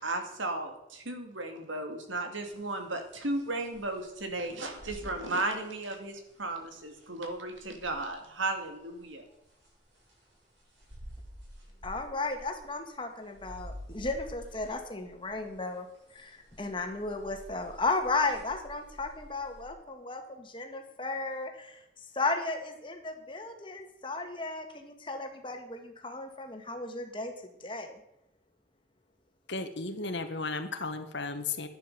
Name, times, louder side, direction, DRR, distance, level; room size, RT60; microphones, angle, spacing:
voice 1, 0.0-9.3, right 2 dB, 80° right, 5 dB, 2.4 m, -35 dB
sound 1, 2.5-8.4 9.3-12.9 13.2-19.7, equal, 65° right, 6.9 m, -50 dB
voice 2, 11.8-21.8 22.1-27.3 27.6-28.0, left 3 dB, 25° left, 4 dB, 1.8 m, -35 dB
voice 3, 29.5-31.7, left 3 dB, 65° left, 8 dB, 1.5 m, -34 dB
11.0 x 10.0 x 6.9 m, 0.82 s
head